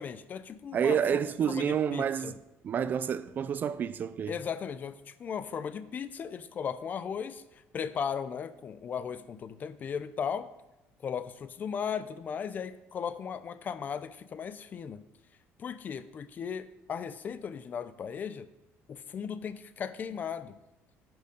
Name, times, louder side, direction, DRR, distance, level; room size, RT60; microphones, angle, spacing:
voice 1, 0.0-1.2 1.5-2.3 4.3-7.4 7.7-10.5 11.0-15.0 15.6-18.5 18.9-20.5, left 7 dB, 35° left, 0.5 m, -36 dB
voice 2, 0.7-2.4 2.6-4.3, right 8 dB, 35° right, 0.4 m, -29 dB
10.5 x 6.6 x 5.2 m
cardioid pair, 150°, 5 cm